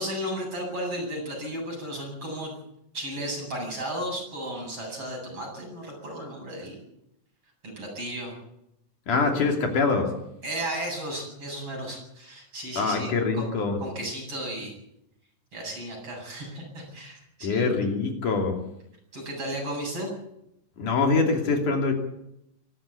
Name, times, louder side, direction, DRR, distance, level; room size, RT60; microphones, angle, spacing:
voice 1, 0.0-2.5 2.9-6.8 7.6-8.4 10.4-13.5 13.8-14.7 15.5-17.7 19.1-20.1, right 1 dB, 45° right, 0 dB, 9.2 m, -34 dB
voice 2, 9.1-10.1 12.8-13.8 17.4-18.6 20.8-21.9, left 4 dB, 70° left, 3 dB, 4.4 m, -24 dB
24.5 x 14.0 x 8.5 m, 0.80 s
omnidirectional pair, 3.7 m